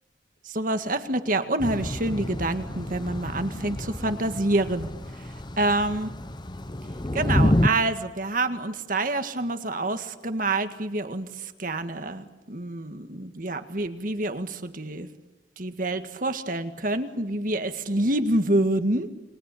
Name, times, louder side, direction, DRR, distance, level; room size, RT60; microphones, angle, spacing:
voice 1, 0.4-4.9 5.6-6.1 7.1-15.1 15.6-19.1, right 2 dB, 50° right, 8 dB, 1.9 m, -27 dB
Thunder / Rain, 1.6-7.7, left 1 dB, 25° left, 1.0 m, -28 dB
30.0 x 21.5 x 8.5 m, 1.1 s
head